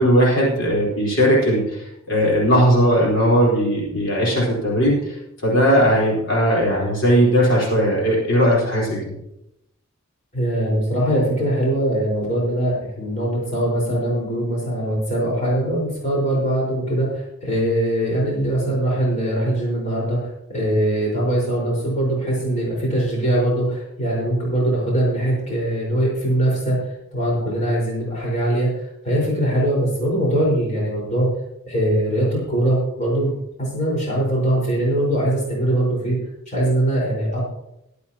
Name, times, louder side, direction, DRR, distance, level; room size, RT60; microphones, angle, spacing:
voice 1, 0.0-5.1 5.4-9.0, equal, 60° left, -5 dB, 4.3 m, -18 dB
voice 2, 10.3-20.2 20.5-31.3 31.7-33.3 33.6-36.2 36.5-37.4, right 1 dB, 35° left, -4 dB, 4.8 m, -21 dB
21.5 x 8.4 x 2.9 m, 0.83 s
head